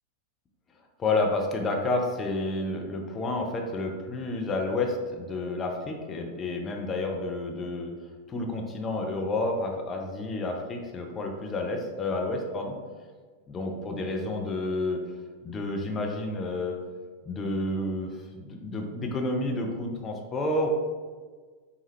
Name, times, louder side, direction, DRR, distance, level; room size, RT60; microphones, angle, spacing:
voice 1, 1.0-7.9 8.3-12.8 13.5-15.0 15.4-16.8 17.3-20.7, left 2 dB, 25° left, 2 dB, 0.5 m, -30 dB
4.1 x 2.3 x 3.3 m, 1.5 s
figure-of-eight pair, 90°, 0 cm